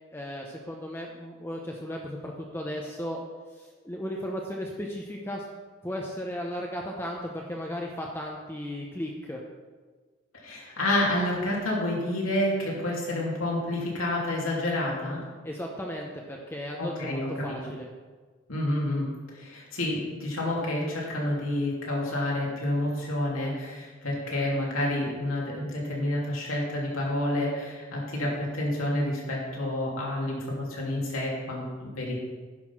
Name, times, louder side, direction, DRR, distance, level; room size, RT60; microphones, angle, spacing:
voice 1, 0.1-3.2 3.5-5.5 5.8-9.4 15.4-17.9, equal, 10° left, 0 dB, 0.8 m, -35 dB
voice 2, 10.4-15.2 16.8-17.6 18.5-19.1 19.3-32.2, left 1 dB, 80° left, -4 dB, 3.1 m, -29 dB
11.0 x 6.0 x 5.9 m, 1.4 s
head